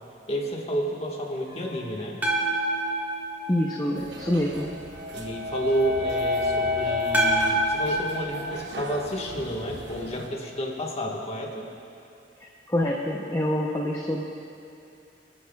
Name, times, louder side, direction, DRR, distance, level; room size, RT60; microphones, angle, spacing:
voice 1, 0.3-2.2 5.1-11.7, equal, 35° left, -1 dB, 1.5 m, -30 dB
sound 1, 1.5-2.0 4.0-7.4, left 3 dB, 90° right, 2.3 m, -29 dB
sound 2, 2.2-4.4 7.1-9.5, right 1 dB, 10° right, 1.6 m, -28 dB
voice 2, 3.5-4.7 12.7-14.2, left 1 dB, 20° left, -1 dB, 0.6 m, -26 dB
sound 3, 3.9-10.3, right 2 dB, 65° right, 0.9 m, -41 dB
28.0 x 9.5 x 2.3 m, 2.7 s
head